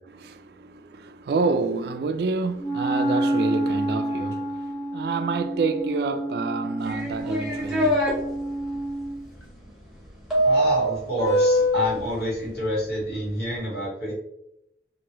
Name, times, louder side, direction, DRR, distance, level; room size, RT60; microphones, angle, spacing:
voice 1, 0.1-8.1, right 4 dB, 65° right, 0.3 m, -28 dB
Wind instrument woodwind instrument, 2.6-9.3, right 1 dB, 15° left, 0.7 m, -28 dB
sound 1, 6.9-8.1 10.3-11.9, equal, ahead, 1.0 m, -22 dB
voice 2, 10.4-14.1, left 1 dB, 65° left, 1.4 m, -28 dB
2.9 x 2.6 x 2.9 m
head